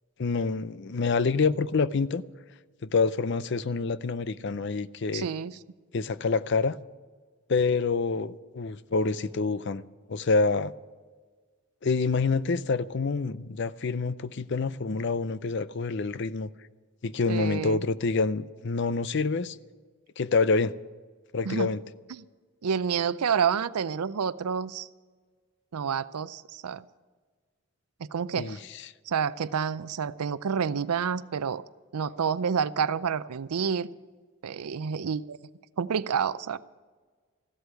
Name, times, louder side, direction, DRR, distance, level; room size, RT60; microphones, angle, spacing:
voice 1, 0.2-2.2 2.8-5.3 5.9-6.8 7.5-9.8 10.1-10.7 11.8-16.5 17.0-19.6 20.2-20.7 21.3-21.8 28.4-28.9, left 4 dB, 50° left, 0.5 m, -27 dB
voice 2, 5.1-5.5 17.3-17.8 21.5-21.7 22.1-22.2 22.6-24.9 25.7-26.8 28.0-28.6 29.1-31.6 31.9-33.9 34.4-35.4 35.8-36.6, right 6 dB, 90° right, 0.5 m, -29 dB
15.0 x 8.0 x 9.7 m
head